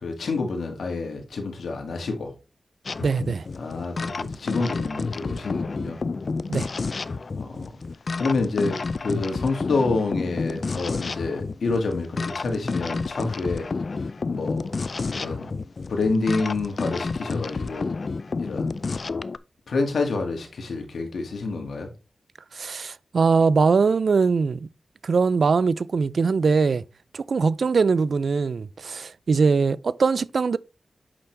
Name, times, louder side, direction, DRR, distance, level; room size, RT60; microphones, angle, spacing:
voice 1, 0.0-2.3 3.5-6.0 7.4-7.6 8.2-13.7 13.9-14.7 15.1-15.5 15.9-17.9 18.4-18.8 19.7-21.9, left 3 dB, 85° left, 2.0 m, -28 dB
sound 1, 2.8-19.4, left 4 dB, 55° left, 0.5 m, -30 dB
voice 2, 3.0-3.5 6.5-6.7 22.5-24.7 25.0-26.8 27.1-30.6, right 4 dB, 70° right, 0.4 m, -21 dB
8.6 x 6.0 x 3.3 m
wide cardioid pair, 75°, 0 cm